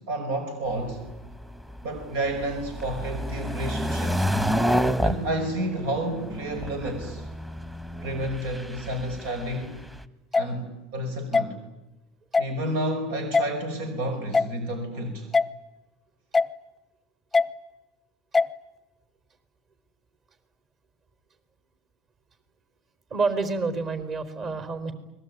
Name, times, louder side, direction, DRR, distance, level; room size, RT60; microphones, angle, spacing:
voice 1, 0.1-1.0 1.8-4.3 5.0-7.3 8.0-9.8 10.4-11.6 12.4-15.3, right 1 dB, 85° right, 6 dB, 5.3 m, -30 dB
sound 1, 0.7-10.0, equal, 5° right, 1.3 m, -29 dB
sound 2, 10.3-10.5 11.3-11.5 12.3-12.5 13.3-13.5 14.3-14.5 15.3-15.5 16.3-16.5 17.3-17.5 18.3-18.5, left 4 dB, 10° left, 0.9 m, -20 dB
voice 2, 23.1-24.9, right 4 dB, 40° right, 11 dB, 4.6 m, -28 dB
29.5 x 21.0 x 9.6 m, 1.0 s
supercardioid pair, 130°, 0 cm